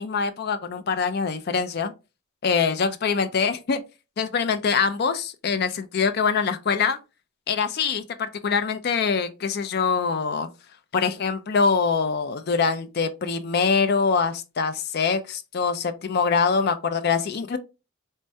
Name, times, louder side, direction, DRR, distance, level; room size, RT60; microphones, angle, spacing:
voice 1, 0.0-1.9 2.4-3.8 4.2-7.0 7.5-10.5 10.9-17.6, left 5 dB, 50° left, 0.4 m, -24 dB
4.4 x 2.1 x 2.6 m
head